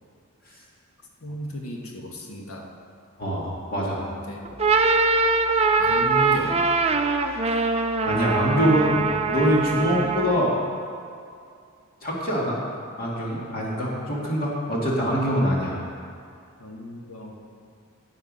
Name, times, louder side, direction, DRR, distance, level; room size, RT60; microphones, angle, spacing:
voice 1, 1.2-2.7 4.0-4.7 5.8-6.6 15.3-15.6 16.6-17.4, equal, 75° left, 0 dB, 1.5 m, -35 dB
voice 2, 3.2-4.0 8.0-10.6 12.0-12.6 13.0-15.8, equal, 45° left, -5 dB, 2.3 m, -24 dB
sound 1, 4.4-10.5, right 4 dB, 30° right, 0.5 m, -22 dB
11.5 x 8.3 x 5.4 m, 2.4 s
head